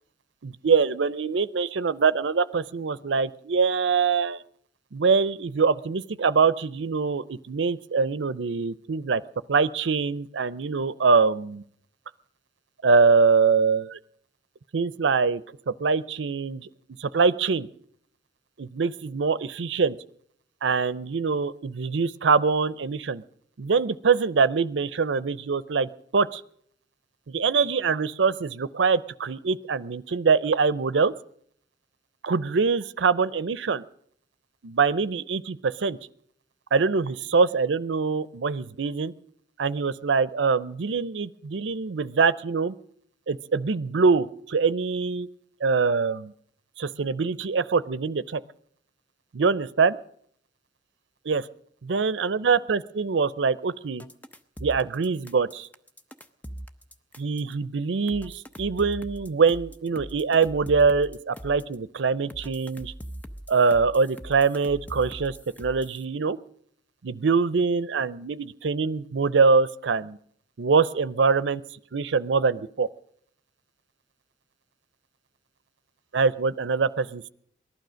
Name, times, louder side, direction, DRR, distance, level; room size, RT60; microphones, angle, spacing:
voice 1, 0.4-4.4 4.9-9.2 9.5-11.6 12.8-14.0 14.7-16.7 17.0-17.7 18.6-20.0 20.6-23.2 23.6-26.4 27.3-31.1 32.2-33.8 34.6-36.0 36.7-39.1 39.6-42.7 43.3-45.3 45.6-46.3 46.8-48.4 49.3-50.0 51.3-51.4 51.9-54.0 54.6-55.7 57.2-62.9 63.5-66.4 67.0-70.2 70.6-71.6 71.9-72.9 76.1-77.3, right 5 dB, 85° right, 18 dB, 0.6 m, -24 dB
sound 1, 54.0-57.5 58.1-61.8 62.3-66.0, equal, 10° left, 0.6 m, -41 dB
18.5 x 12.0 x 6.3 m, 0.65 s
head